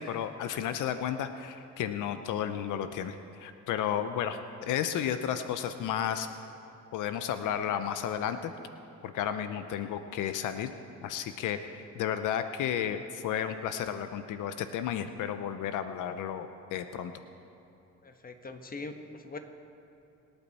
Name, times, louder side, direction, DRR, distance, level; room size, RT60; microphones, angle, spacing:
voice 1, 0.0-6.3 6.9-8.5 9.0-10.7 11.0-17.1, left 9 dB, 85° left, 9 dB, 0.7 m, -33 dB
voice 2, 18.0-19.4, left 3 dB, 30° left, 6 dB, 1.3 m, -42 dB
24.5 x 8.9 x 4.2 m, 3.0 s
cardioid pair, 90°, 30 cm